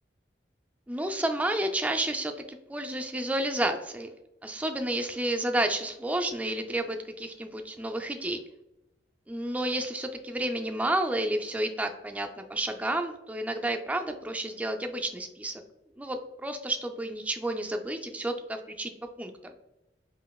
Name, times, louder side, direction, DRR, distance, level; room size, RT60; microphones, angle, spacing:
voice 1, 0.9-4.1 4.4-8.4 9.3-15.6 16.0-18.9 19.2-19.5, right 1 dB, 10° right, 4 dB, 0.3 m, -31 dB
5.0 x 2.8 x 2.3 m, 0.92 s
head